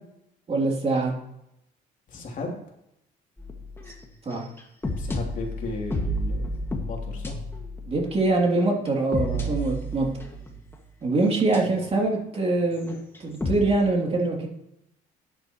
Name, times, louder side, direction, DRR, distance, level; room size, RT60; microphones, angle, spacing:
voice 1, 0.5-1.1 4.2-4.5 7.8-10.1 11.0-14.5, right 2 dB, 35° right, 0 dB, 3.1 m, -24 dB
voice 2, 2.1-2.6 5.0-6.5 6.8-7.3 9.3-9.6, left 2 dB, 50° left, 0 dB, 3.2 m, -35 dB
sound 1, 3.4-10.8 11.5-12.1 12.3-13.6, equal, 15° left, 1.9 m, -31 dB
13.5 x 10.0 x 3.1 m, 0.82 s
cardioid pair, 110°, 17 cm